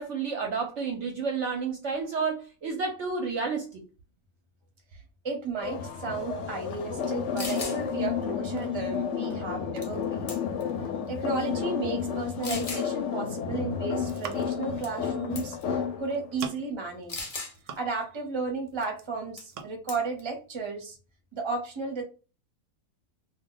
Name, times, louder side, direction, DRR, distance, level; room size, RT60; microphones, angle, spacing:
voice 1, 0.0-3.8, right 5 dB, 65° right, 0.8 m, -30 dB
voice 2, 4.9-10.4 11.1-17.3 17.7-21.0 21.3-22.0, right 4 dB, 25° right, 0.7 m, -34 dB
sound 1, 5.6-16.4, left 7 dB, 65° left, 0.8 m, -31 dB
sound 2, 7.0-7.1 7.4-7.8 9.8-10.0 10.3-10.7 11.4-11.5 12.4-12.9 14.8-15.1 15.4-15.6 17.1-17.5 19.4-19.6 19.9-20.2, left 3 dB, 50° left, 0.4 m, -37 dB
sound 3, 13.9-14.7 15.7-15.9 16.1-16.8 17.3-18.2 18.5-19.1 19.5-19.7, right 6 dB, 90° right, 1.1 m, -42 dB
2.3 x 2.2 x 3.7 m
omnidirectional pair, 1.5 m